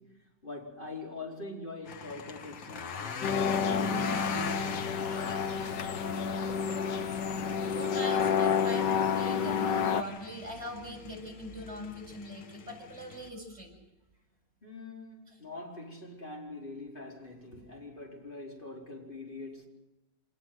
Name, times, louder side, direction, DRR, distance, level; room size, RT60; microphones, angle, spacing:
voice 1, 0.0-5.5 14.6-19.7, left 2 dB, 25° left, 5.0 m, -44 dB
sound 1, 1.9-13.3, left 6 dB, 90° left, 2.2 m, -43 dB
sound 2, 3.2-10.0, left 6 dB, 70° left, 1.9 m, -29 dB
voice 2, 7.7-13.7, equal, 35° right, 7.3 m, -41 dB
26.0 x 20.0 x 7.9 m
omnidirectional pair, 2.0 m